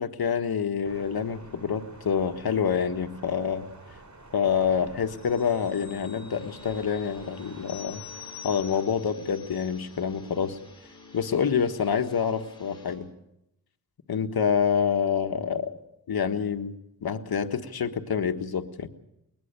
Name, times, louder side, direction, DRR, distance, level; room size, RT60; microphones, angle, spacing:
voice 1, 0.0-3.7 4.3-8.0 8.4-10.6 11.1-13.1 14.1-15.7 16.1-16.7 17.0-18.9, left 7 dB, 75° left, 7 dB, 1.4 m, -27 dB
Thunder, 0.8-8.8, right 2 dB, 50° right, 3.0 m, -49 dB
sound 1, 5.2-10.3 10.6-10.8, left 10 dB, 45° left, 5.5 m, -47 dB
sound 2, 6.3-13.0, left 4 dB, 10° left, 5.2 m, -50 dB
21.0 x 20.5 x 6.8 m, 0.83 s
wide cardioid pair, 125°, 37 cm